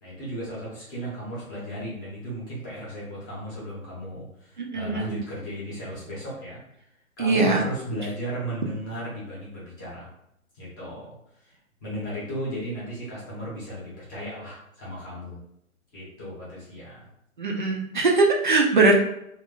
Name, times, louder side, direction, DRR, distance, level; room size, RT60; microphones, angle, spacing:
voice 1, 0.0-6.6 7.2-10.1 10.6-11.1 11.4-11.5 11.8-15.4 15.9-17.1, right 1 dB, 15° left, -8 dB, 0.9 m, -35 dB
voice 2, 4.6-5.2 7.2-7.6 17.4-18.9, right 3 dB, 35° right, 1 dB, 0.5 m, -21 dB
2.8 x 2.5 x 3.7 m, 0.78 s
hypercardioid pair, 155°, 42 cm